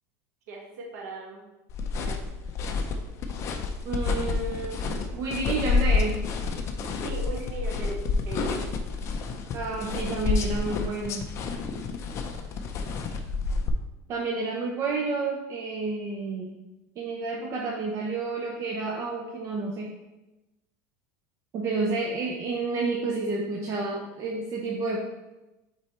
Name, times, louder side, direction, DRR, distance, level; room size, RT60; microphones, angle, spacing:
voice 1, 0.5-1.4 2.0-2.3 7.0-8.0 8.2-8.6, right 2 dB, 85° right, -2 dB, 1.6 m, -38 dB
sound 1, 1.7-13.7, left 4 dB, 30° left, 0.6 m, -29 dB
voice 2, 3.8-6.2 9.5-11.2 14.1-16.6 17.0-19.9 21.5-25.0, right 3 dB, 35° right, 0 dB, 0.7 m, -30 dB
8.2 x 4.4 x 3.0 m, 1.0 s
supercardioid pair, 150°, 9 cm